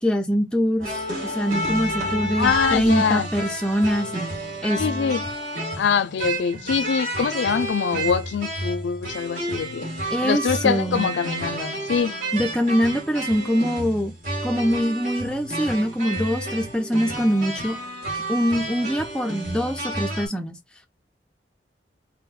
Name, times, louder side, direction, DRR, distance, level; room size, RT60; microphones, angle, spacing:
voice 1, 0.0-4.4 4.6-4.8 10.1-11.1 12.3-14.1 14.4-17.8 18.3-20.6, equal, 5° left, 0.4 m, -23 dB
sound 1, 0.8-20.3, right 1 dB, 40° right, 1.9 m, -30 dB
voice 2, 2.4-3.3 4.8-5.3 5.8-9.9 10.2-12.2, left 6 dB, 75° left, 0.4 m, -24 dB
3.8 x 2.1 x 4.2 m
head